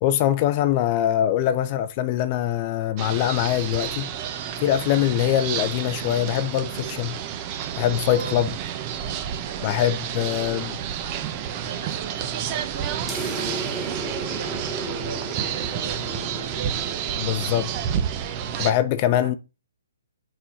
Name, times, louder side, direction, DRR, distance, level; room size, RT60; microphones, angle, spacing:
voice 1, 0.0-4.1 4.6-7.2 7.8-8.5 9.6-10.8 17.2-17.7 18.6-19.4, left 11 dB, 35° left, 0.6 m, -23 dB
sound 1, 3.0-18.7, right 9 dB, 30° right, 0.8 m, -30 dB
voice 2, 4.8-5.1 8.0-8.4 9.4-9.8 10.1-10.3 11.6-17.3, right 5 dB, 50° right, 2.3 m, -41 dB
sound 2, 13.1-18.0, right 1 dB, ahead, 2.0 m, -35 dB
6.1 x 4.4 x 5.4 m
hypercardioid pair, 145°, 0 cm